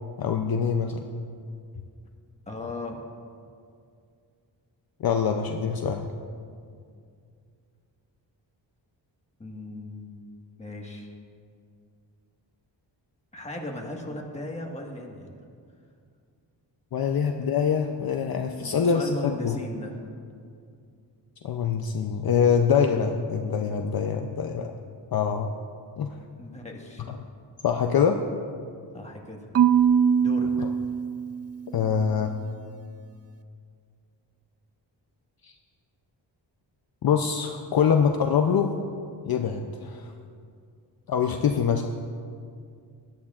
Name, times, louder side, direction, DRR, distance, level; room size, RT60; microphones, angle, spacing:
voice 1, 0.2-1.0 5.0-6.1 16.9-19.6 21.4-24.7 25.1-25.5 26.0-26.2 27.1-27.2 27.6-28.2 31.7-32.3 35.4-35.5 37.0-38.8 39.3-40.1 41.1-41.9, left 7 dB, 55° left, 4 dB, 0.6 m, -24 dB
voice 2, 2.5-3.1 9.4-10.1 10.6-11.1 13.3-15.3 17.1-17.2 18.5-20.0 26.4-27.1 28.9-29.6 30.2-30.7, left 1 dB, 15° left, 0 dB, 1.5 m, -37 dB
Marimba xylophone / Wood, 29.5-31.7, right 7 dB, 35° right, 0.4 m, -22 dB
17.5 x 10.5 x 2.4 m, 2.3 s
wide cardioid pair, 110°, 45 cm